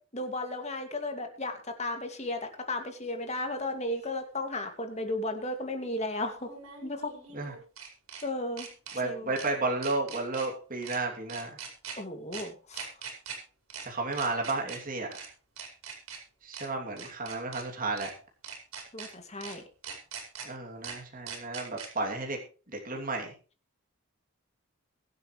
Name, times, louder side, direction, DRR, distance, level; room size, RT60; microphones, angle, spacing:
voice 1, 0.1-6.5 6.8-7.1 8.2-8.7 9.0-9.3 12.0-12.9 18.9-19.6, left 2 dB, 30° left, 5 dB, 2.4 m, -34 dB
sound 1, 3.9-4.0 6.4-8.2 8.6-9.0 9.4-9.5 9.8-10.5 10.8-11.0 11.3-12.0 12.3-12.4 12.7-13.4 13.7-13.9 14.1-14.8 15.1-15.3 15.6-16.2 16.5-16.7 17.0-17.6 18.0-18.1 18.4-19.1 19.4-19.5 19.8-20.5 20.8-21.0 21.3-21.9, right 6 dB, 90° right, 5.1 m, -41 dB
voice 2, 8.9-11.5 13.8-15.2 16.4-18.1 20.4-22.4 22.7-23.3, right 3 dB, 40° right, 1 dB, 2.9 m, -32 dB
22.5 x 8.1 x 3.3 m, 0.38 s
head